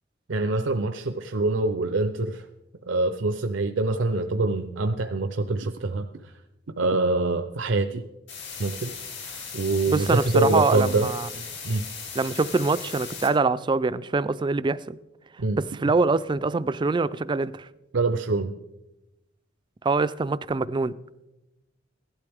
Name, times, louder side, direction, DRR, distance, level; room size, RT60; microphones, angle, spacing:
voice 1, 0.3-2.5 2.9-6.3 6.8-8.0 8.6-8.9 9.2-11.1 11.6-11.9 15.4-15.6 17.9-18.5, right 2 dB, 70° right, 0.6 m, -25 dB
sound 1, 8.3-13.3, left 5 dB, 65° left, 3.5 m, -38 dB
voice 2, 9.9-11.3 12.2-15.0 15.6-17.7 19.8-21.0, right 3 dB, 25° right, 0.4 m, -24 dB
17.0 x 12.0 x 3.5 m
head